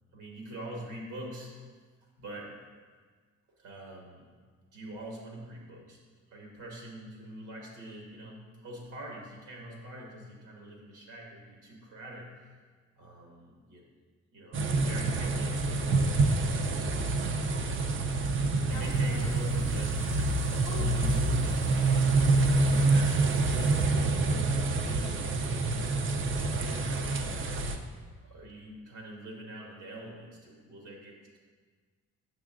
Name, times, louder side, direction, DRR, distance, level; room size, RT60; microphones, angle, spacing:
voice 1, 0.1-1.5 2.2-2.5 3.6-4.3 4.7-6.0 6.3-12.3 13.0-13.9 14.3-16.9 17.5-18.1 18.6-19.9 20.6-22.3 22.8-25.9 26.2-27.5 27.9-31.4, right 1 dB, 80° right, -1 dB, 1.5 m, -45 dB
sound 1, 14.5-27.8, right 3 dB, 40° right, 0.5 m, -27 dB
sound 2, 18.7-23.9, left 4 dB, 65° left, 0.6 m, -43 dB
6.3 x 6.0 x 2.5 m, 1.5 s
cardioid pair, 90°, 30 cm